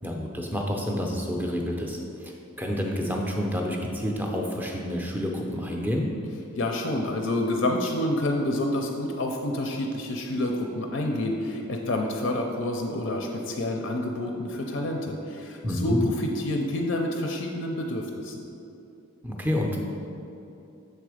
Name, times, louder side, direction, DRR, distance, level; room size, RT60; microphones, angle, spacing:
voice 1, 0.0-6.1 15.6-16.0 19.2-19.9, equal, 10° right, 0 dB, 0.5 m, -29 dB
voice 2, 6.5-18.4, left 1 dB, 55° left, 2 dB, 0.4 m, -28 dB
6.7 x 3.8 x 4.9 m, 2.8 s
head